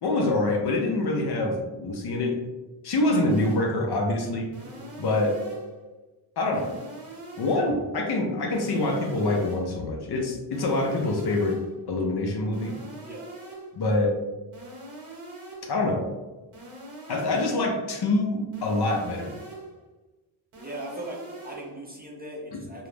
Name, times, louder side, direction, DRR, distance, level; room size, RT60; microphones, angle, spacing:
voice 1, 0.0-2.4 2.8-4.5 5.0-5.4 6.4-6.7 7.4-11.6 11.9-12.7 13.7-14.2 15.7-16.0 17.1-19.3, left 2 dB, 55° left, 2 dB, 0.5 m, -25 dB
sound 1, 3.3-3.8 4.5-5.8 6.5-7.8 8.5-9.8 10.5-11.8 12.5-13.8 14.5-15.8 16.5-17.8 18.5-19.8 20.5-21.8, right 2 dB, 85° right, 0.9 m, -43 dB
voice 2, 20.6-22.9, right 1 dB, 20° right, -3 dB, 0.5 m, -39 dB
2.3 x 2.0 x 3.1 m, 1.2 s
cardioid pair, 70°, 49 cm